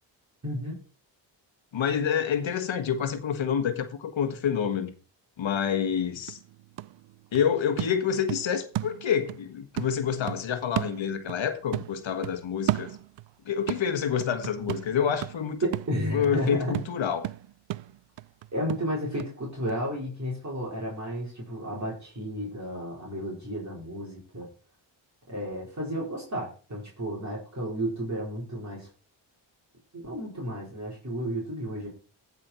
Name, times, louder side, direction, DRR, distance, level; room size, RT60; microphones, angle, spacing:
voice 1, 0.4-0.8 15.6-16.7 18.5-24.5 25.3-28.9 29.9-31.9, equal, 35° right, 4.7 m, -32 dB
voice 2, 1.7-4.9 5.4-6.4 7.3-12.9 13.4-15.6 16.1-17.3, left 8 dB, 65° left, 1.5 m, -27 dB
sound 1, 5.8-5.9 6.3-9.4 9.8-11.5 11.7-13.3 13.7-19.3 19.7-19.8, right 15 dB, 65° right, 0.5 m, -34 dB
14.5 x 5.5 x 4.4 m
cardioid pair, 75°, 49 cm